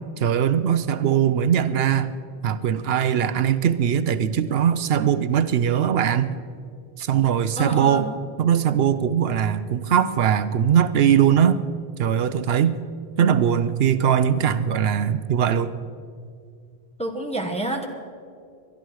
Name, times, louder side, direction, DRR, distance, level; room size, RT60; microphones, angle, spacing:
voice 1, 0.2-2.2 2.4-6.4 7.0-8.1 8.4-11.6 12.0-12.8 13.2-15.7, right 8 dB, 70° right, 13 dB, 0.8 m, -20 dB
voice 2, 7.6-8.1 17.0-17.9, right 1 dB, 5° left, 4 dB, 1.0 m, -28 dB
22.0 x 12.0 x 4.7 m, 2.3 s
omnidirectional pair, 1.1 m